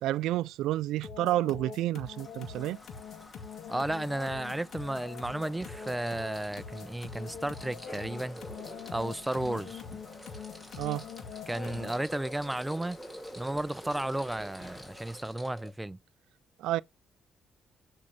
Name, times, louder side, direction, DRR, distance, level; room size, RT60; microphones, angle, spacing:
voice 1, 0.0-2.8 10.8-11.0 16.6-16.8, right 15 dB, 90° right, 0.4 m, -30 dB
sound 1, 1.0-12.1, left 6 dB, 65° left, 2.2 m, -44 dB
Rain, 2.0-15.2, left 2 dB, 25° left, 2.4 m, -54 dB
voice 2, 3.7-8.4 8.9-9.8 11.5-13.0 13.4-16.0, right 1 dB, 10° right, 0.5 m, -33 dB
sound 2, 5.4-15.7, equal, 10° left, 4.3 m, -47 dB
8.6 x 6.3 x 4.2 m
cardioid pair, 90°, 0 cm